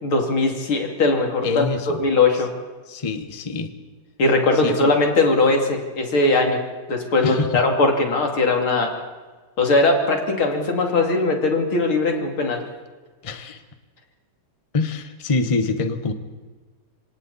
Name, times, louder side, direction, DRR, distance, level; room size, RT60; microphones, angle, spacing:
voice 1, 0.0-2.5 4.2-6.6 6.9-8.9 9.6-12.6, left 3 dB, 85° left, 2 dB, 3.6 m, -20 dB
voice 2, 1.4-2.0 2.9-3.7 4.6-4.8 7.2-7.6 13.2-13.6 14.7-16.1, left 4 dB, 20° left, 8 dB, 1.0 m, -25 dB
26.5 x 26.5 x 4.2 m, 1.4 s
omnidirectional pair, 2.2 m